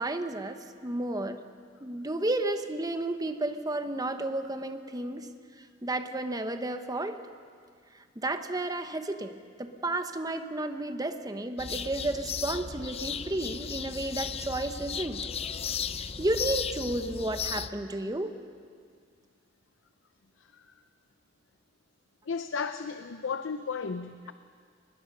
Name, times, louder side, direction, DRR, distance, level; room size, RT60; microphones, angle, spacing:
voice 1, 0.0-1.4 1.8-5.3 5.8-7.2 8.2-15.3 16.0-18.3, right 2 dB, 20° right, 8 dB, 1.0 m, -32 dB
sound 1, 11.6-17.7, left 7 dB, 30° left, 0.5 m, -35 dB
voice 2, 22.3-24.3, left 5 dB, 80° left, 10 dB, 0.6 m, -34 dB
24.5 x 20.0 x 5.6 m, 2.1 s
head